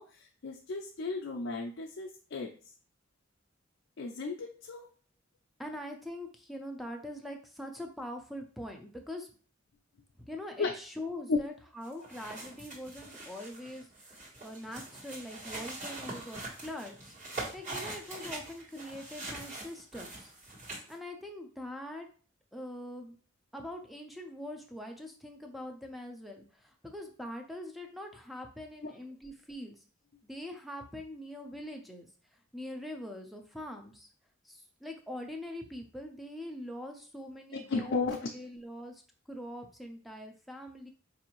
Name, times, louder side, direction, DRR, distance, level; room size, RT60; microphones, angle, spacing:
voice 1, 0.0-2.5 4.0-4.9 10.6-10.7 11.3-11.4 37.5-38.3, left 4 dB, 65° left, 1 dB, 0.4 m, -34 dB
voice 2, 5.6-9.3 10.2-17.1 17.5-20.3 20.9-22.1 22.5-23.2 23.5-29.8 30.2-32.1 32.5-34.1 34.4-39.0 39.3-40.9, left 1 dB, ahead, 3 dB, 0.5 m, -43 dB
sound 1, 11.8-20.9, right 2 dB, 40° right, 1.4 m, -43 dB
4.7 x 2.6 x 3.0 m, 0.40 s
head